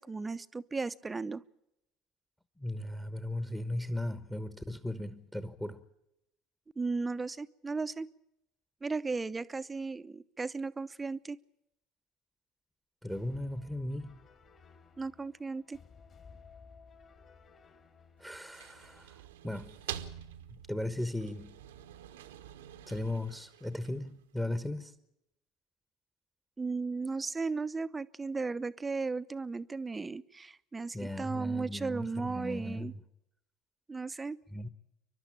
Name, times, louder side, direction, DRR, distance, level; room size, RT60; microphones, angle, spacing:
voice 1, 0.0-1.4 6.8-8.1 8.8-11.4 15.0-15.8 26.6-32.9 33.9-34.4, right 4 dB, 20° right, 0.7 m, -35 dB
voice 2, 2.6-5.8 13.0-14.2 18.2-19.2 19.4-19.8 20.5-21.5 22.9-24.9 30.9-33.0 34.5-34.7, left 1 dB, 5° left, 1.2 m, -37 dB
sound 1, 13.1-19.1, left 5 dB, 40° left, 3.0 m, -57 dB
sound 2, 18.2-24.2, right 10 dB, 75° right, 1.0 m, -47 dB
29.5 x 12.0 x 8.8 m
figure-of-eight pair, 70°, 0 cm